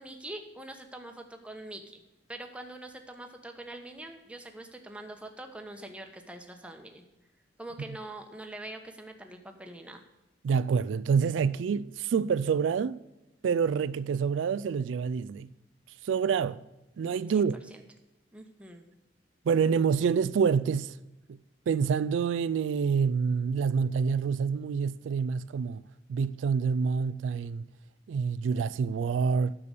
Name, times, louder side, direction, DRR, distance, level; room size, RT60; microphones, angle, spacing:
voice 1, 0.0-2.0 2.3-7.0 7.6-10.0 17.3-17.8 18.3-18.8, right 1 dB, 5° right, 1.0 m, -44 dB
voice 2, 10.4-13.0 13.4-15.5 16.0-16.6 17.0-17.5 19.5-21.0 21.3-21.4 21.7-25.8 26.1-27.6 28.1-29.5, right 6 dB, 90° right, 0.3 m, -27 dB
9.7 x 6.9 x 6.7 m
head